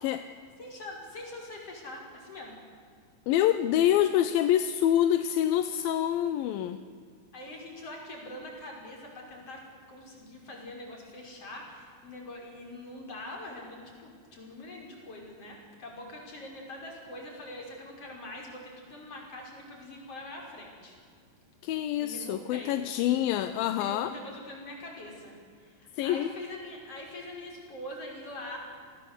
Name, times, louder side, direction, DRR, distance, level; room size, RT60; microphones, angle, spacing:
voice 1, 0.6-2.5 7.3-20.9 22.0-22.8 23.8-28.6, left 1 dB, 35° left, 0 dB, 6.5 m, -43 dB
voice 2, 3.3-6.8 21.6-24.1 25.9-26.3, left 11 dB, 75° left, 10 dB, 2.4 m, -26 dB
29.5 x 19.5 x 8.3 m, 2.2 s
omnidirectional pair, 4.6 m